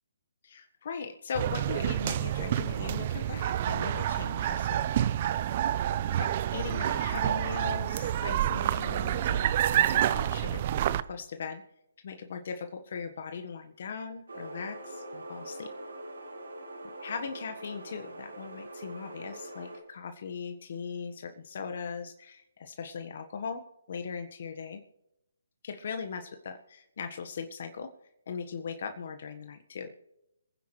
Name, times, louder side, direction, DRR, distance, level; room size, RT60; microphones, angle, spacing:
voice 1, 0.4-5.4 6.1-10.6 11.1-11.6 12.0-15.7 17.0-23.6 23.9-24.8 25.6-27.9 28.3-29.9, left 6 dB, 55° left, 6 dB, 1.4 m, -39 dB
sound 1, 1.3-11.0, right 11 dB, 40° right, 0.6 m, -28 dB
sound 2, 14.3-19.8, right 1 dB, 85° right, 4.6 m, -43 dB
26.5 x 9.8 x 3.3 m, 0.83 s
hypercardioid pair, 150°, 0 cm